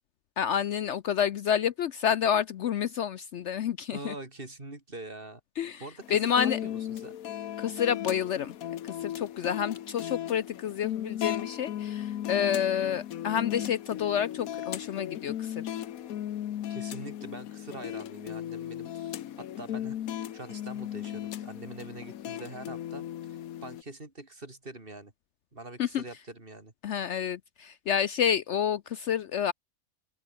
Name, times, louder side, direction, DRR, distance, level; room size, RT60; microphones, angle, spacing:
voice 1, 0.4-4.1 5.6-5.8 6.1-6.6 7.6-8.5 8.8-15.7 25.8-26.0 26.8-29.5, left 8 dB, 65° left, 0.9 m, -29 dB
voice 2, 3.9-5.4 5.8-7.2 16.7-20.0 20.3-25.1 25.5-26.7, right 2 dB, 40° right, 3.7 m, -44 dB
sound 1, 6.0-23.8, left 11 dB, 85° left, 1.3 m, -36 dB
open air
omnidirectional pair, 1.4 m